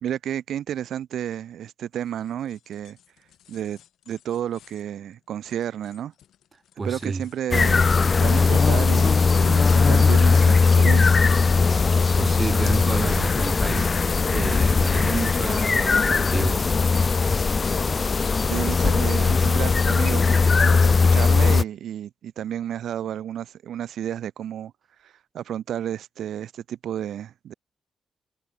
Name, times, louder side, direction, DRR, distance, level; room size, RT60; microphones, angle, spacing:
voice 1, 0.0-3.0 3.5-3.8 4.1-6.1 6.8-7.8 8.2-11.2 18.5-24.7 25.0-27.5, right 10 dB, 80° right, 1.3 m, -31 dB
sound 1, 2.0-9.4 9.9-12.2, left 10 dB, 85° left, 3.6 m, -55 dB
voice 2, 6.8-7.3 11.7-14.0 14.3-16.8, right 4 dB, 40° right, 0.9 m, -30 dB
sound 2, 7.5-21.6, left 4 dB, 40° left, 0.3 m, -19 dB
cardioid pair, 75°, 0 cm